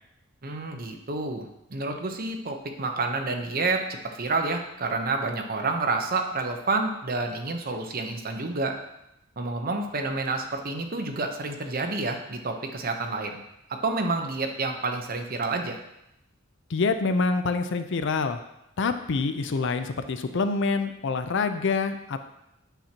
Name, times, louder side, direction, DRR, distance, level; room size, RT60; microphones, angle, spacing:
voice 1, 0.4-1.5 1.7-8.8 9.4-13.4 13.7-15.8, right 3 dB, 45° right, 4 dB, 0.8 m, -29 dB
voice 2, 16.7-18.4 18.8-22.3, left 4 dB, 65° left, 9 dB, 0.5 m, -26 dB
9.1 x 5.9 x 2.9 m, 0.85 s
head